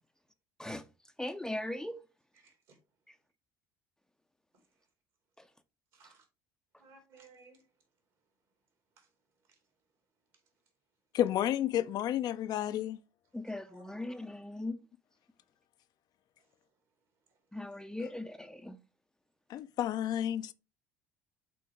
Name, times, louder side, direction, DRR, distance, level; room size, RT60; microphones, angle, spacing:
voice 1, 1.2-2.0 5.4-5.5 13.3-14.8 17.5-18.8, left 1 dB, 5° left, 0.6 m, -39 dB
voice 2, 2.3-2.8 4.5-4.6 5.9-6.3 6.8-7.7 9.0-9.1 9.5-9.6 13.6-14.1 16.4-16.5 17.3-17.4, right 3 dB, 60° right, 2.9 m, -60 dB
voice 3, 11.1-13.0 18.0-18.1 19.5-20.5, left 11 dB, 50° left, 0.5 m, -31 dB
7.7 x 3.8 x 3.4 m
figure-of-eight pair, 60°, 9 cm